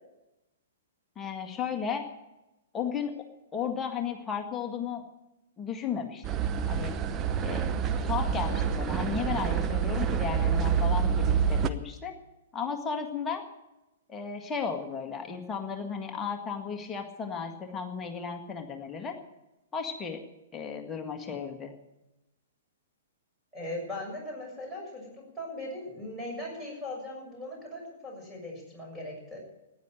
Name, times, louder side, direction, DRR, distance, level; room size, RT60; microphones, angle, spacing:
voice 1, 1.2-2.0 2.7-3.1 3.5-5.0 5.6-6.2 6.7-6.9 7.4-12.1 12.5-13.4 14.1-19.2 19.7-20.2 20.5-21.7, left 6 dB, 15° left, 4 dB, 1.8 m, -34 dB
sound 1, 6.2-11.7, right 7 dB, 20° right, 0.8 m, -27 dB
voice 2, 23.5-29.4, left 1 dB, 5° right, -2 dB, 6.7 m, -39 dB
14.5 x 10.5 x 9.0 m, 0.95 s
figure-of-eight pair, 110°, 0 cm